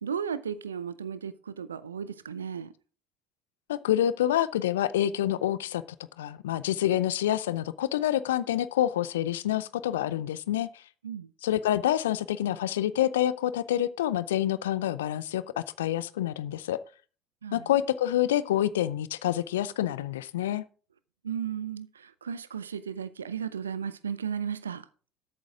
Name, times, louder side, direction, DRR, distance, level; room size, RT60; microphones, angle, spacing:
voice 1, 0.0-2.7 11.0-11.3 17.4-17.6 21.2-24.8, right 7 dB, 85° right, 0.5 m, -35 dB
voice 2, 3.7-5.8 6.2-10.8 11.4-16.8 17.5-20.6, left 12 dB, 75° left, 0.5 m, -27 dB
13.0 x 8.8 x 3.7 m
figure-of-eight pair, 55°, 0 cm